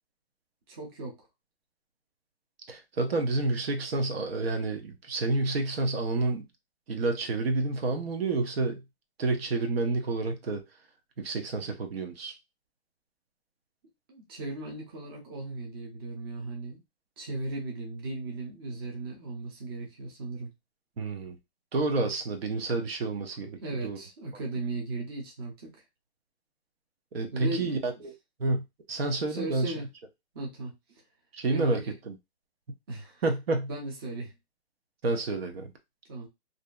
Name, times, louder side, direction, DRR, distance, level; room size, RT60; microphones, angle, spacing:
voice 1, 0.7-1.2 14.1-16.8 17.2-20.5 23.6-25.8 27.3-27.8 29.3-29.9 30.3-30.7 31.5-31.9 32.9-33.2 33.7-34.3 36.1-36.3, right 2 dB, 25° right, 0.6 m, -37 dB
voice 2, 2.7-6.5 6.9-8.8 9.2-10.6 11.2-12.3 21.0-21.4 21.7-24.0 27.1-28.1 28.4-28.6 28.9-29.7 31.3-32.1 33.2-33.7 35.0-35.7, right 3 dB, 70° right, 0.8 m, -29 dB
2.7 x 2.6 x 2.2 m
hypercardioid pair, 165°, 32 cm